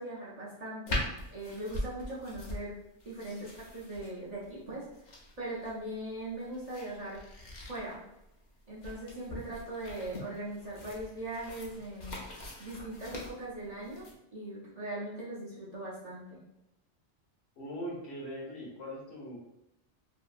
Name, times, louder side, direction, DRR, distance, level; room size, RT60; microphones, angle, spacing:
voice 1, 0.0-2.8 3.0-4.8 5.4-7.2 7.7-8.0 8.7-12.2 12.6-14.0 14.3-16.4, right 1 dB, 40° right, -9 dB, 0.7 m, -40 dB
sound 1, 0.9-14.1, left 1 dB, 50° left, 0.6 m, -42 dB
voice 2, 17.6-19.4, equal, 65° left, -3 dB, 1.0 m, -40 dB
2.7 x 2.7 x 2.4 m, 0.87 s
omnidirectional pair, 1.2 m